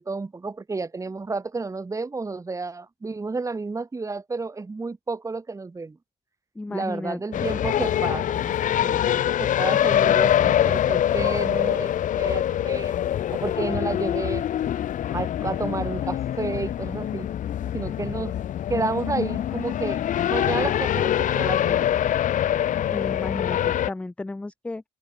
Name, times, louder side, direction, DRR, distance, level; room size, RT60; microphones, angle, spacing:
voice 1, 0.0-6.0 6.7-12.9 13.3-14.4 15.1-17.3 17.7-18.4 18.7-20.0 20.3-22.0, right 3 dB, 20° right, 1.8 m, -31 dB
voice 2, 6.6-7.5 22.9-24.8, left 2 dB, 5° left, 0.3 m, -33 dB
sound 1, 7.3-23.9, left 11 dB, 50° left, 0.8 m, -24 dB
cardioid pair, 110°, 17 cm